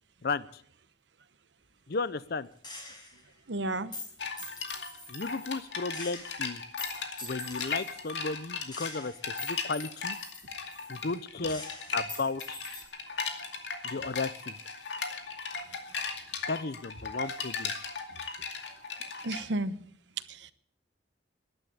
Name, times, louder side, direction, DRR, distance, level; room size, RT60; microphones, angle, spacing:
voice 1, 0.2-0.6 1.9-2.5 5.1-6.6 7.2-10.2 10.9-11.6 11.9-12.6 13.8-14.5 16.5-17.7, left 4 dB, 60° left, 0.7 m, -34 dB
Gunshot gunfire, 2.6-3.3 3.9-5.6 5.9-8.2 8.7-11.2 11.5-12.8, left 2 dB, 25° left, 5.4 m, -44 dB
voice 2, 3.5-3.9 19.2-19.8 20.3-20.5, right 1 dB, 75° right, 1.0 m, -32 dB
sound 1, 4.2-19.4, left 4 dB, 75° left, 2.3 m, -37 dB
14.0 x 11.5 x 8.7 m
head